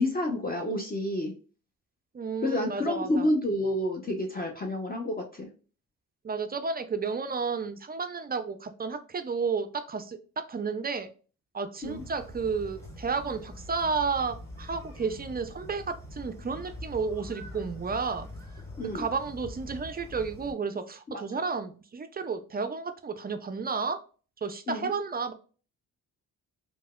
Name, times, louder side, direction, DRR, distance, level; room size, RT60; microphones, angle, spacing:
voice 1, 0.0-1.3 2.4-5.5 11.8-12.0 18.8-19.0 21.1-21.2 24.7-24.9, left 1 dB, 25° left, 1 dB, 0.6 m, -29 dB
voice 2, 2.1-3.3 6.2-11.1 11.5-18.3 18.8-24.0 24.4-25.3, right 5 dB, 25° right, 10 dB, 0.4 m, -32 dB
sound 1, 11.8-20.5, left 1 dB, 5° left, 1.1 m, -44 dB
3.3 x 2.1 x 2.2 m, 0.37 s
supercardioid pair, 50°, 38 cm